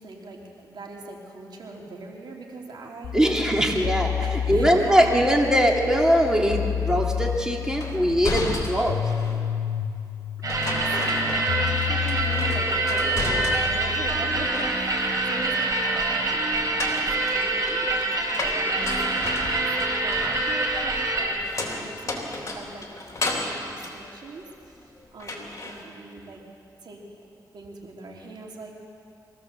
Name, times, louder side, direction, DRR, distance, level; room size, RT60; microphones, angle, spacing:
voice 1, 0.0-5.3 10.6-19.0 19.5-22.9 23.2-24.8 25.1-26.4 26.8-27.3 27.5-28.7, right 3 dB, 75° right, -1 dB, 3.1 m, -40 dB
sound 1, 3.0-14.5, left 9 dB, 90° left, 0.6 m, -31 dB
voice 2, 3.1-9.0, equal, 10° right, 0 dB, 2.9 m, -21 dB
sound 2, 7.8-9.4 10.5-11.8 12.1-13.9 14.3-15.1 16.5-24.8 25.2-25.8, left 2 dB, 45° left, 3.8 m, -33 dB
sound 3, 10.4-21.3, right 2 dB, 50° right, 4.6 m, -25 dB
23.5 x 15.5 x 7.5 m, 2.4 s
cardioid pair, 65°, 7 cm